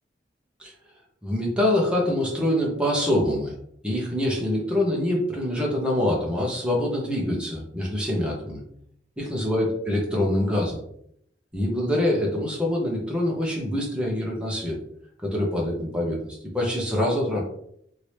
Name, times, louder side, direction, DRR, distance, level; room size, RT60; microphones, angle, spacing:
voice 1, 1.2-3.5 3.8-8.6 9.2-10.8 11.5-14.8 15.2-17.4, left 1 dB, 5° right, -3 dB, 0.8 m, -25 dB
3.0 x 2.8 x 3.2 m, 0.71 s
head